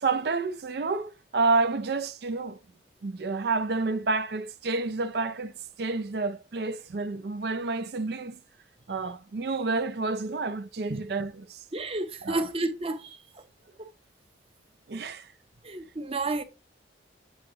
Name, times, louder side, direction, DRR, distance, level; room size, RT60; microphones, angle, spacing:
voice 1, 0.0-2.6 3.0-8.4 8.9-11.6 12.2-12.5 14.9-15.3, right 3 dB, 60° right, 0.4 m, -29 dB
voice 2, 11.7-13.2 13.8-13.9 15.6-16.4, right 2 dB, 30° right, 0.7 m, -31 dB
7.9 x 3.8 x 3.8 m
head